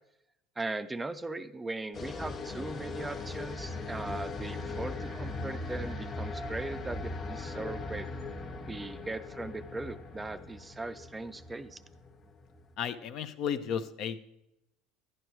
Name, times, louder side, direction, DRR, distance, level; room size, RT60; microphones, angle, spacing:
voice 1, 0.6-8.1 8.7-11.8, right 2 dB, 15° right, 11 dB, 0.4 m, -39 dB
sound 1, 1.9-12.7, left 3 dB, 40° left, 1.2 m, -39 dB
voice 2, 12.8-14.2, left 8 dB, 55° left, 11 dB, 0.6 m, -33 dB
11.0 x 10.0 x 3.1 m, 0.83 s
supercardioid pair, 115°, 0 cm